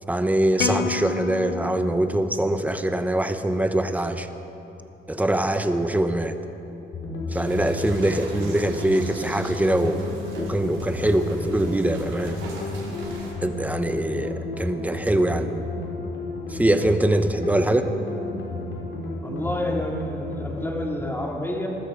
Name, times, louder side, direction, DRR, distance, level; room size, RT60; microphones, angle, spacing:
voice 1, 0.1-4.3 5.1-6.3 7.3-10.0 10.3-12.4 13.4-15.5 16.5-17.9, right 1 dB, 5° right, 8 dB, 1.0 m, -23 dB
sound 1, 0.6-3.0, left 10 dB, 55° left, 0.5 m, -32 dB
sound 2, 6.9-20.6, left 2 dB, 75° left, 4.1 m, -32 dB
sound 3, 7.3-13.3, right 2 dB, 75° right, 4.9 m, -42 dB
voice 2, 19.2-21.7, left 1 dB, 10° left, -1 dB, 2.9 m, -29 dB
20.5 x 13.5 x 5.1 m, 3.0 s
cardioid pair, 90°, 20 cm